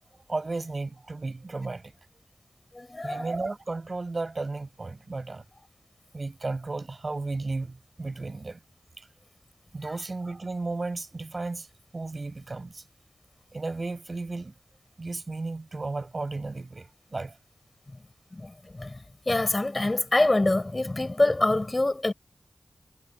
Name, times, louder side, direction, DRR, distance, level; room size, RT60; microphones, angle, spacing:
voice 1, 0.3-1.9 3.0-5.4 6.1-8.6 9.0-9.1 9.7-11.7 11.9-12.8 13.5-14.5 15.0-17.4, right 3 dB, 55° right, 7.5 m, -34 dB
voice 2, 2.7-3.2 18.3-22.1, left 2 dB, 40° left, 7.9 m, -25 dB
cardioid pair, 40°, 0 cm